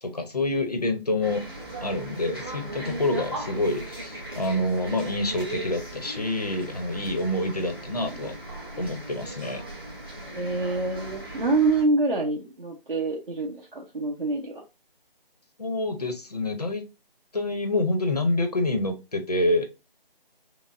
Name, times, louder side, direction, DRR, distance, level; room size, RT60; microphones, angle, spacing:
voice 1, 0.0-1.4 1.8-8.4 8.8-9.6 15.6-16.8 17.3-19.7, left 1 dB, 40° left, 0.7 m, -27 dB
sound 1, 1.2-11.8, right 1 dB, 25° right, 1.0 m, -38 dB
voice 2, 10.4-14.6, right 3 dB, 55° right, 0.9 m, -26 dB
5.8 x 2.1 x 2.6 m
figure-of-eight pair, 175°, 30 cm